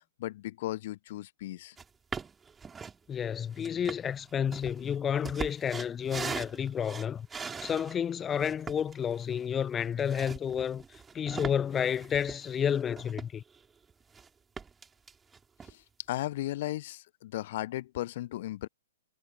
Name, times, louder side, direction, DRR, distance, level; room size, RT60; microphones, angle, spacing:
voice 1, 0.0-1.8 15.6-18.7, left 15 dB, 45° left, 0.9 m, -36 dB
sound 1, 1.8-1.9 2.1-3.0 3.5-7.9 8.4-13.6 13.9-14.3 14.6-15.7, right 5 dB, 10° right, 5.2 m, -41 dB
voice 2, 3.1-13.4, left 8 dB, 15° left, 0.7 m, -31 dB
figure-of-eight pair, 115°, 0 cm